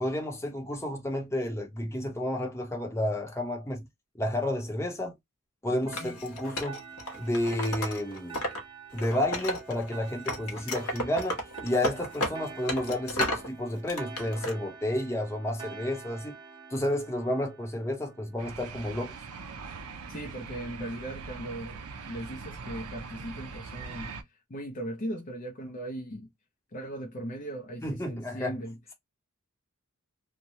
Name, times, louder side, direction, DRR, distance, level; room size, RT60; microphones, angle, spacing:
voice 1, 0.0-3.8 4.1-5.1 5.6-6.8 7.2-8.4 8.9-16.4 16.7-19.2 27.8-28.6, left 1 dB, 10° left, 0.8 m, -31 dB
voice 2, 5.7-6.1 20.1-26.3 26.7-28.8, right 1 dB, 35° left, 0.5 m, -38 dB
Wood, 5.9-8.6 8.9-9.9 10.3-13.5 13.9-14.5, left 1 dB, 85° left, 1.1 m, -33 dB
sound 1, 5.9-19.0, right 5 dB, 20° right, 0.9 m, -47 dB
sound 2, 18.4-24.2, right 4 dB, 90° right, 0.6 m, -42 dB
3.1 x 2.2 x 2.7 m
head